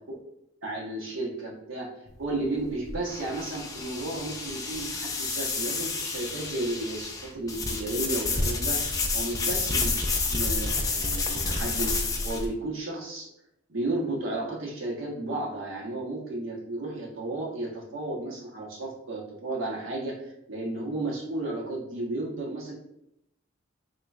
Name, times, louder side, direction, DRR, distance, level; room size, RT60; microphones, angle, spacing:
voice 1, 0.6-1.9 2.2-9.9 10.3-13.3 13.7-22.7, right 2 dB, 85° right, -3 dB, 1.0 m, -33 dB
sound 1, 2.1-12.5, left 3 dB, 15° left, 0.3 m, -29 dB
3.8 x 3.1 x 2.4 m, 0.79 s
head